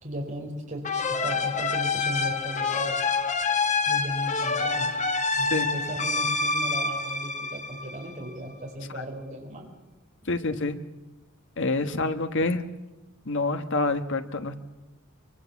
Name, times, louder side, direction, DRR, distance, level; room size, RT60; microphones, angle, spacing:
voice 1, 0.0-3.0 3.9-4.9 5.3-9.6, right 1 dB, 35° right, 1 dB, 5.0 m, -36 dB
sound 1, 0.8-8.3, left 4 dB, 35° left, 1.4 m, -27 dB
voice 2, 10.3-10.8 11.6-12.6 13.2-14.6, left 3 dB, 55° left, 9 dB, 1.4 m, -27 dB
24.0 x 23.5 x 7.2 m, 1.0 s
head